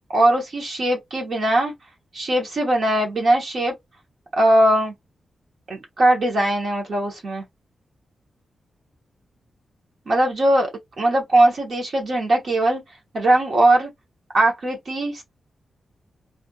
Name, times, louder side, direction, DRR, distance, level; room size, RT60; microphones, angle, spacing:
voice 1, 0.1-1.7 2.1-3.7 4.3-4.9 5.7-7.4 10.1-10.7 11.0-12.8 13.1-13.9 14.3-15.2, right 1 dB, 50° right, 0.9 m, -20 dB
2.7 x 2.4 x 2.7 m
wide cardioid pair, 175°, 0 cm